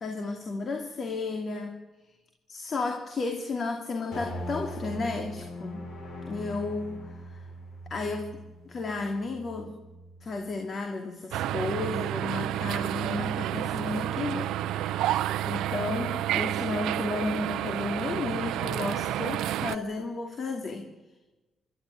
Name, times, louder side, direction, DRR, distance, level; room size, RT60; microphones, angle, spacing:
voice 1, 0.0-1.8 2.5-5.8 6.3-7.4 7.9-9.7 10.2-14.5 15.5-20.9, left 3 dB, 45° left, 4 dB, 2.6 m, -33 dB
sound 1, 4.1-10.6, equal, 65° left, 7.8 m, -41 dB
sound 2, 11.3-19.8, right 13 dB, 90° right, 0.6 m, -30 dB
25.5 x 12.5 x 9.5 m, 1.1 s
cardioid pair, 90°, 0 cm